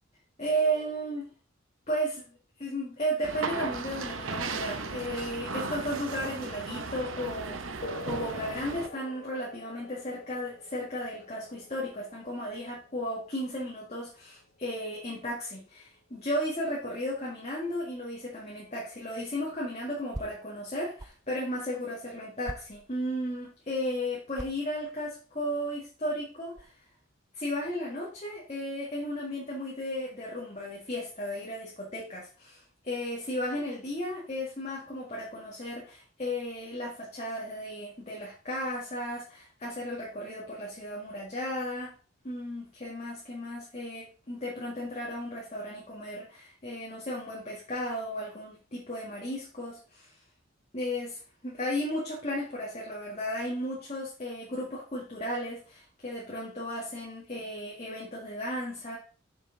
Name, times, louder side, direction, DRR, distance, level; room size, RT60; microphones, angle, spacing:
voice 1, 0.4-1.2 1.9-2.2 2.6-26.7 27.3-41.9 42.2-50.1 50.7-59.0, equal, 35° left, -4 dB, 1.9 m, -34 dB
sound 1, 3.2-8.9, right 4 dB, 70° right, 0.8 m, -36 dB
sound 2, 7.8-15.8, left 2 dB, 55° left, 1.0 m, -47 dB
sound 3, 20.1-21.2 21.7-21.8 22.4-23.3 24.2-26.7, right 1 dB, 20° right, 0.5 m, -44 dB
6.7 x 6.4 x 4.0 m, 0.37 s
head